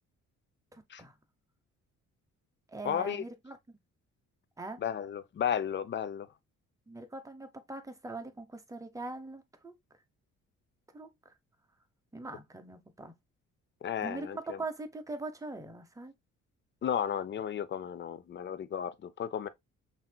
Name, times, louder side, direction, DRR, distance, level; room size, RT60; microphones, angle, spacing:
voice 1, 0.7-1.1 2.7-3.6 4.6-4.8 6.9-9.7 10.9-11.3 12.1-13.1 14.0-16.1, right 2 dB, 10° right, 1.0 m, -42 dB
voice 2, 2.8-3.2 4.8-6.3 13.8-14.6 16.8-19.5, left 8 dB, 40° left, 0.6 m, -33 dB
5.8 x 2.9 x 2.3 m
cardioid pair, 90°, 30 cm